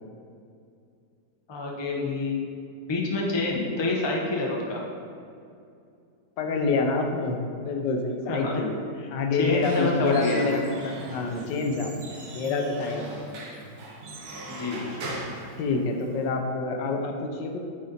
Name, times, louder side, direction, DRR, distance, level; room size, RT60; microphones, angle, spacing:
voice 1, 1.5-2.4 2.9-4.8 8.3-8.6 9.3-10.4 14.5-14.8, left 2 dB, 25° left, -1 dB, 0.6 m, -27 dB
voice 2, 6.4-8.7 9.1-12.1 12.3-13.0 15.6-17.6, left 3 dB, 85° left, 3 dB, 1.4 m, -27 dB
Squeak / Wood, 9.4-16.3, right 1 dB, 65° right, 1.4 m, -39 dB
9.0 x 4.1 x 4.0 m, 2.4 s
omnidirectional pair, 1.9 m